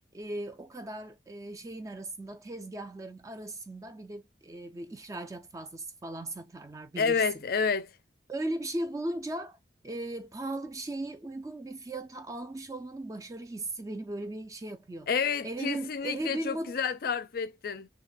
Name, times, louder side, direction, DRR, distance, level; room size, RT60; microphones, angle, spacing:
voice 1, 0.1-7.4 8.3-9.6 9.8-15.1 15.4-16.8, right 1 dB, 20° right, 0.3 m, -37 dB
voice 2, 7.0-7.9 15.1-17.9, left 6 dB, 50° left, 0.4 m, -29 dB
3.4 x 2.2 x 3.6 m
head